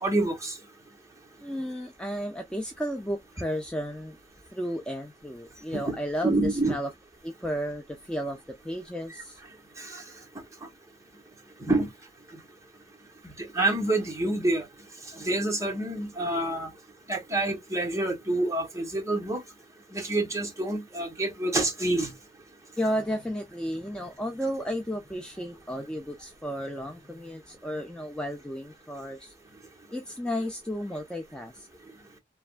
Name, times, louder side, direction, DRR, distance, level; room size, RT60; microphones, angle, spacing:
voice 1, 0.0-0.6 5.7-5.9 6.2-6.7 9.8-10.0 11.6-11.9 13.4-14.6 15.2-16.7 17.1-19.4 19.9-22.1, right 2 dB, 15° right, 1.0 m, -27 dB
voice 2, 1.4-4.2 4.5-6.9 7.2-9.4 22.8-29.3 29.9-31.7, equal, 5° left, 0.4 m, -33 dB
3.3 x 2.2 x 2.4 m
head